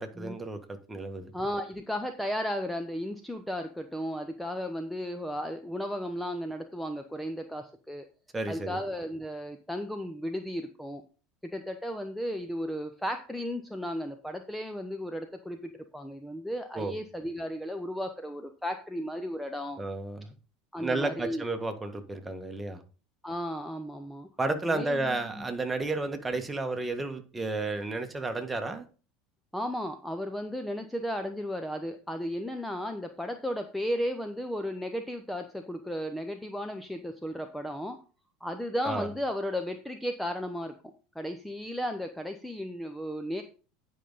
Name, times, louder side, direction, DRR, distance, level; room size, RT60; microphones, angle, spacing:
voice 1, 0.0-1.3 8.3-8.8 16.7-16.9 19.8-20.3 20.8-22.8 24.4-28.8 38.8-39.1, right 2 dB, 15° right, 5 dB, 1.6 m, -32 dB
voice 2, 1.3-8.1 8.5-11.0 11.4-19.8 20.7-21.4 23.2-24.3 24.6-25.5 29.5-38.0 38.4-40.7 41.1-43.4, equal, 5° left, 6 dB, 0.9 m, -34 dB
10.0 x 5.4 x 4.1 m, 0.37 s
hypercardioid pair, 75°, 0 cm